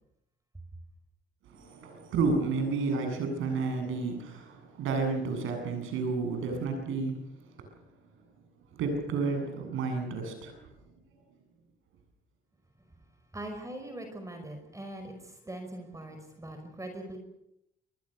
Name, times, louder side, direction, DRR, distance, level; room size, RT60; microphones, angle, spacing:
voice 1, 1.4-7.2 7.6-7.8 8.7-10.7, right 4 dB, 85° right, 5 dB, 8.0 m, -31 dB
voice 2, 13.3-17.2, right 1 dB, 15° right, 5 dB, 5.2 m, -41 dB
27.5 x 20.5 x 6.9 m, 0.82 s
cardioid pair, 90°, 20 cm